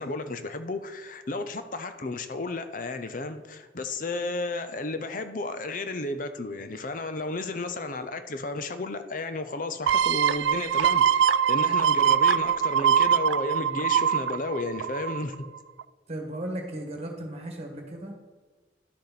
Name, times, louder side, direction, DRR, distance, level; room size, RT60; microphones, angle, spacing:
voice 1, 0.0-11.2 11.5-15.5, left 2 dB, 45° left, 9 dB, 0.6 m, -33 dB
sound 1, 9.9-15.3 15.8-15.9, right 8 dB, 85° right, 0.3 m, -23 dB
voice 2, 16.1-18.2, right 1 dB, 35° right, 3 dB, 1.5 m, -36 dB
11.5 x 6.7 x 4.2 m, 1.4 s
head